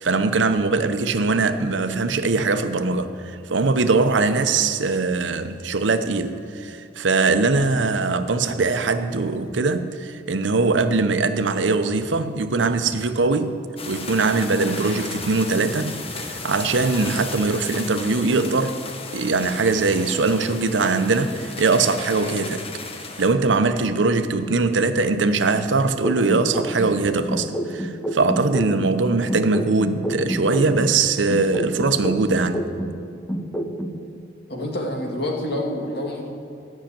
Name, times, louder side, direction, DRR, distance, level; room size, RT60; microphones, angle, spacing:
voice 1, 0.0-13.6 13.9-18.8 19.1-22.6 23.2-32.6, right 3 dB, 85° right, 0.7 m, -21 dB
sound 1, 13.8-23.3, left 4 dB, 35° left, 0.9 m, -35 dB
sound 2, 26.0-29.0 29.3-33.0 33.3-34.0, right 1 dB, 10° left, 0.7 m, -28 dB
voice 2, 34.5-36.3, left 1 dB, 65° left, 2.0 m, -27 dB
13.0 x 6.5 x 8.6 m
head